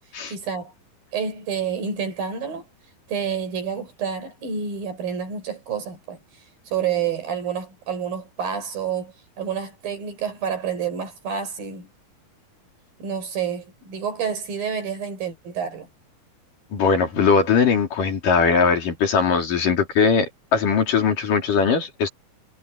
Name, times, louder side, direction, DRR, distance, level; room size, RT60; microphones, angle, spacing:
voice 1, 0.3-0.7 1.1-2.7 3.1-6.2 6.7-11.9 13.0-15.9, right 7 dB, 70° right, 6.8 m, -29 dB
voice 2, 16.7-22.1, left 5 dB, 60° left, 5.0 m, -20 dB
omnidirectional pair, 4.3 m